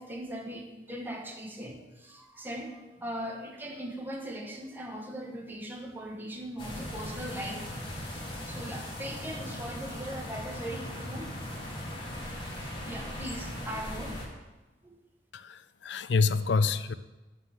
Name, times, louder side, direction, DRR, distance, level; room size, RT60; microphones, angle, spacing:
voice 1, 0.0-11.3 12.5-14.2 14.8-14.9, equal, 10° right, 0 dB, 1.2 m, -40 dB
sound 1, 6.6-14.3, left 1 dB, 30° left, 2.1 m, -39 dB
voice 2, 15.3-16.9, left 4 dB, 75° left, 14 dB, 0.5 m, -27 dB
11.5 x 3.9 x 7.6 m, 1.1 s
head